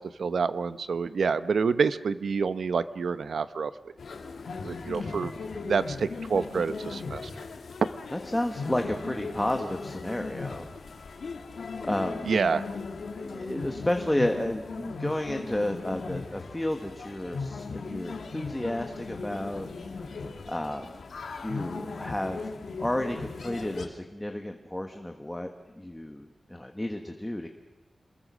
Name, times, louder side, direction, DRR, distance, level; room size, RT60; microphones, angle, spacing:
voice 1, 0.0-3.7 4.6-5.3 5.7-7.3 12.3-12.6, right 5 dB, 90° right, 13 dB, 0.9 m, -27 dB
sound 1, 4.0-23.9, left 4 dB, 85° left, 2.3 m, -38 dB
voice 2, 8.1-10.7 10.9-11.2 11.8-12.3 13.2-19.7 20.5-20.9 21.4-22.4 22.8-25.5 25.8-27.5, left 1 dB, 10° left, 4 dB, 1.5 m, -31 dB
27.5 x 21.5 x 6.3 m, 1.1 s
wide cardioid pair, 135°, 0 cm